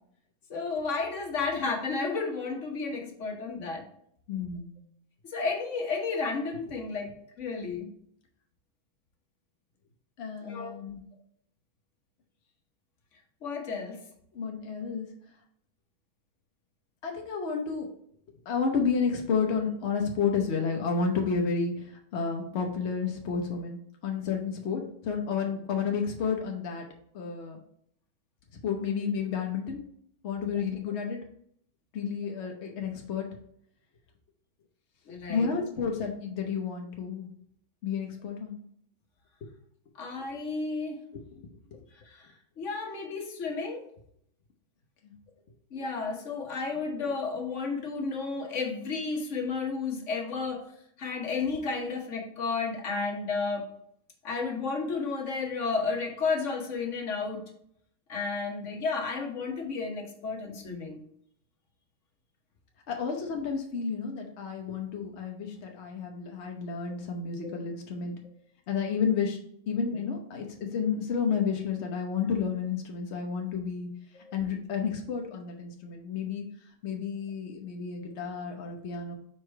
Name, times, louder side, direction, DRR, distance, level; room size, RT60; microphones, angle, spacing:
voice 1, 0.5-3.8 5.3-7.1 7.4-7.9 10.4-10.8 13.4-14.0 35.1-35.5 40.0-41.0 41.9-43.8 45.7-50.7 51.0-53.7 54.2-57.4 58.1-61.0 67.4-67.5 74.1-74.3, left 4 dB, 45° left, 2 dB, 1.1 m, -32 dB
voice 2, 4.3-4.8 10.2-11.0 14.3-15.1 17.0-17.9 18.5-26.9 27.1-27.6 28.6-29.8 30.2-31.2 31.9-33.3 35.3-37.3 37.8-38.6 41.3-41.4 41.7-41.8 45.0-45.1 62.9-68.2 68.7-69.4 69.7-73.9 74.3-76.4 76.8-79.1, left 5 dB, 65° left, 2 dB, 0.6 m, -31 dB
4.8 x 4.3 x 4.5 m, 0.69 s
omnidirectional pair, 2.2 m